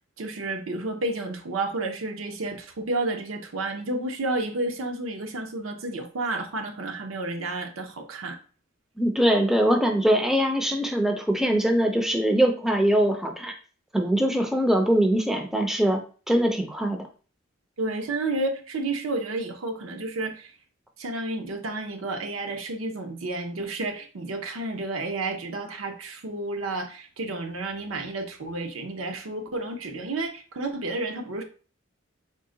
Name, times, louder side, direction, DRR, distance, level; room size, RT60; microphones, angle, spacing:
voice 1, 0.2-8.4 17.8-20.5 21.0-31.4, right 2 dB, 90° right, 5 dB, 0.6 m, -31 dB
voice 2, 9.0-13.5 13.9-16.0 16.3-17.0, right 1 dB, ahead, 4 dB, 0.4 m, -22 dB
3.8 x 2.1 x 3.8 m, 0.38 s
head